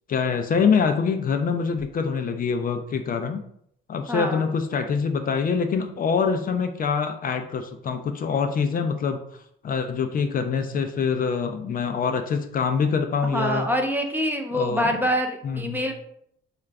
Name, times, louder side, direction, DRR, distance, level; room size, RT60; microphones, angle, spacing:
voice 1, 0.1-3.4 3.9-9.2 9.6-13.7 14.5-15.0 15.4-15.8, left 5 dB, 45° left, 6 dB, 0.4 m, -25 dB
voice 2, 4.1-4.4 13.3-15.9, equal, 10° right, 3 dB, 0.5 m, -25 dB
3.7 x 2.4 x 3.3 m, 0.71 s
cardioid pair, 90°, 20 cm